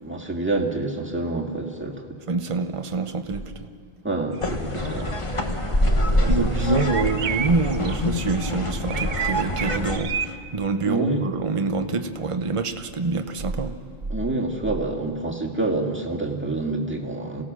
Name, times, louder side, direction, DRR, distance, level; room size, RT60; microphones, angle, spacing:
voice 1, 0.0-2.0 4.0-5.2 5.5-5.6 6.2-6.3 6.6-6.7 10.8-11.2 14.1-17.4, right 2 dB, 10° right, -1 dB, 2.0 m, -27 dB
voice 2, 2.3-3.7 6.3-13.7, right 3 dB, 30° right, 7 dB, 0.9 m, -26 dB
sound 1, 4.4-10.0, left 1 dB, 30° left, 1.3 m, -25 dB
sound 2, 4.4-4.5 4.8-5.1 6.8-8.0 8.9-10.3, right 9 dB, 60° right, 0.9 m, -30 dB
28.5 x 17.5 x 6.2 m, 2.5 s
omnidirectional pair, 1.1 m